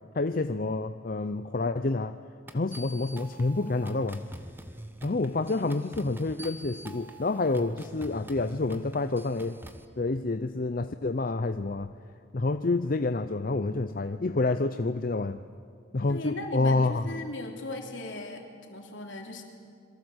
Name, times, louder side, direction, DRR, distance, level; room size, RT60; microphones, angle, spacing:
voice 1, 0.1-2.2 2.5-4.2 5.0-9.6 10.0-11.9 12.3-15.4 15.9-17.1, left 3 dB, 45° left, 10 dB, 0.6 m, -28 dB
sound 1, 2.5-9.8, right 1 dB, 10° right, 1.2 m, -44 dB
voice 2, 16.1-19.4, left 2 dB, 65° left, 2 dB, 3.4 m, -38 dB
27.0 x 23.0 x 8.0 m, 2.3 s
head